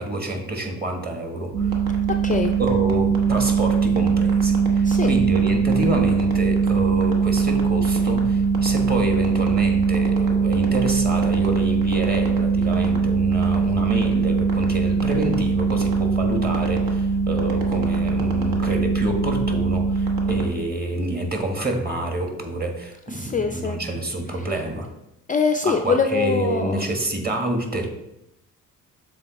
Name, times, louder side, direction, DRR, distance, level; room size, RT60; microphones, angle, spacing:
voice 1, 0.0-1.8 2.6-24.9 25.6-27.9, right 1 dB, 25° right, 3 dB, 1.5 m, -27 dB
sound 1, 1.5-20.5, right 5 dB, 70° right, 1.3 m, -21 dB
voice 2, 2.1-2.5 4.8-5.1 23.1-23.8 25.3-26.8, left 5 dB, 25° left, 6 dB, 0.4 m, -23 dB
6.8 x 3.9 x 4.0 m, 0.87 s
supercardioid pair, 65°, 36 cm